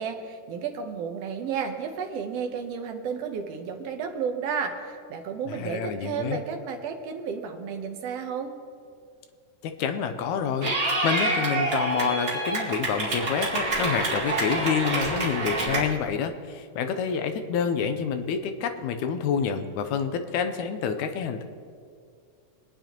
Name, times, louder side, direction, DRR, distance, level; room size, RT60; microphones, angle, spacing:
voice 1, 0.0-8.5, right 6 dB, 65° right, 4 dB, 1.7 m, -32 dB
voice 2, 5.5-6.4 9.6-10.7 11.0-21.4, left 7 dB, 75° left, 8 dB, 2.0 m, -28 dB
Clapping / Cheering, 10.6-15.8, right 2 dB, 30° right, 2.1 m, -27 dB
24.0 x 9.5 x 3.0 m, 2.2 s
omnidirectional pair, 3.6 m